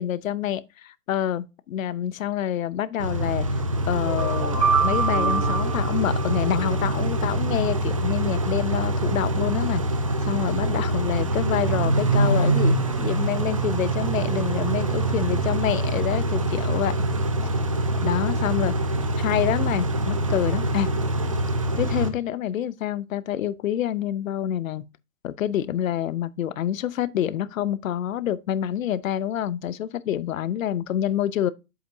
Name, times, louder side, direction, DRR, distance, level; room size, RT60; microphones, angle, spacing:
voice 1, 0.0-3.5 3.9-9.8 10.2-16.9 18.0-18.7 19.2-20.9 21.8-24.8 25.2-31.5, left 11 dB, 55° left, 0.7 m, -27 dB
Car / Idling / Accelerating revving vroom, 3.0-22.1, right 2 dB, 25° right, 0.4 m, -24 dB
sound 1, 3.9-7.0, right 5 dB, 90° right, 2.7 m, -26 dB
7.9 x 7.9 x 2.6 m
hypercardioid pair, 140°, 49 cm